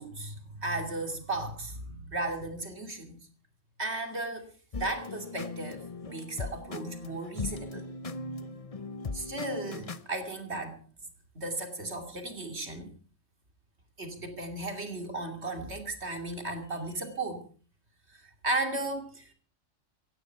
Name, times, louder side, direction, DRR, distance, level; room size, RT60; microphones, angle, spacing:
voice 1, 0.0-3.2 3.8-4.5 4.8-7.8 9.1-10.8 11.3-12.9 14.0-17.4 18.4-19.3, right 2 dB, 60° right, 4 dB, 3.0 m, -35 dB
sound 1, 4.7-10.1, left 3 dB, 35° left, 0.8 m, -39 dB
16.5 x 16.5 x 4.6 m, 0.41 s
omnidirectional pair, 1.3 m